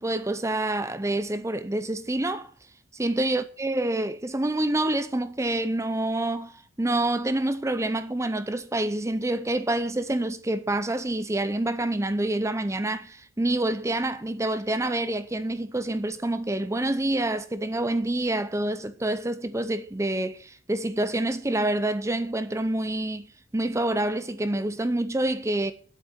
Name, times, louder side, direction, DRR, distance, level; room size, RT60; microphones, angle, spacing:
voice 1, 0.0-2.5 2.9-25.7, right 1 dB, 15° right, 0.6 m, -27 dB
8.3 x 8.1 x 8.9 m
head